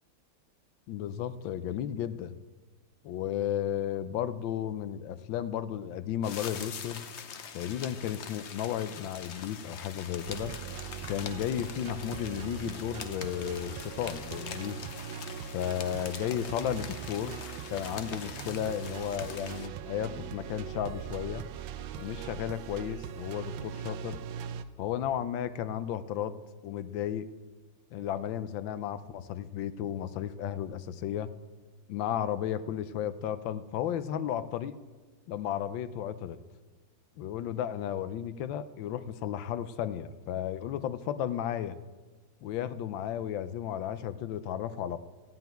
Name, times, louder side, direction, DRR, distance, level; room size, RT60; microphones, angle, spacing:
voice 1, 0.9-2.4 3.0-7.1 7.5-10.6 11.1-14.8 15.5-17.4 17.7-21.4 22.0-24.2 24.8-27.3 27.9-31.3 31.9-34.7 35.3-36.4 37.2-41.8 42.4-45.0, left 10 dB, 85° left, 13 dB, 1.4 m, -34 dB
sound 1, 6.2-19.7, left 7 dB, 65° left, 0.6 m, -44 dB
sound 2, 10.3-24.6, right 8 dB, 85° right, 1.3 m, -41 dB
15.0 x 5.8 x 9.0 m, 1.3 s
omnidirectional pair, 2.0 m